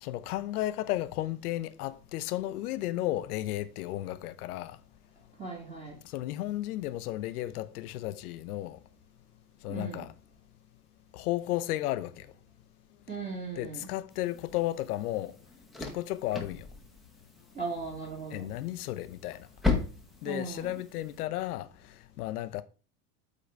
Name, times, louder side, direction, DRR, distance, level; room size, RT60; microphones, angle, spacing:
voice 1, 0.0-4.8 6.0-8.8 9.6-10.1 11.1-12.3 13.6-15.3 15.8-16.7 18.3-19.5 20.2-22.6, left 15 dB, 80° left, 0.8 m, -34 dB
voice 2, 5.4-5.9 9.7-10.0 13.1-13.9 17.5-18.5 20.3-20.7, right 4 dB, 15° right, 2.2 m, -38 dB
sound 1, 14.1-21.2, left 3 dB, ahead, 1.0 m, -37 dB
8.5 x 3.9 x 4.6 m
supercardioid pair, 135°, 45 cm